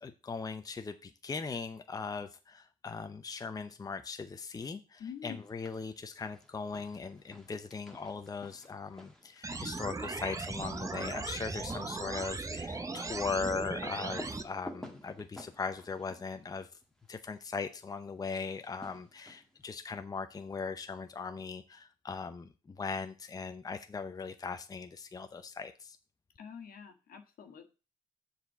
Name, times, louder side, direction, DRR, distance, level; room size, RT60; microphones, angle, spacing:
voice 1, 0.0-16.7 17.1-26.0, left 4 dB, 25° left, 8 dB, 0.7 m, -39 dB
voice 2, 5.0-5.4 26.4-27.7, left 7 dB, 75° left, 6 dB, 1.5 m, -46 dB
sound 1, 5.3-5.9 6.2-17.2 18.4-19.6, left 1 dB, 5° left, 1.5 m, -52 dB
sound 2, 9.4-14.4, right 3 dB, 20° right, 0.8 m, -38 dB
7.3 x 4.2 x 6.7 m, 0.32 s
cardioid pair, 100°, 15 cm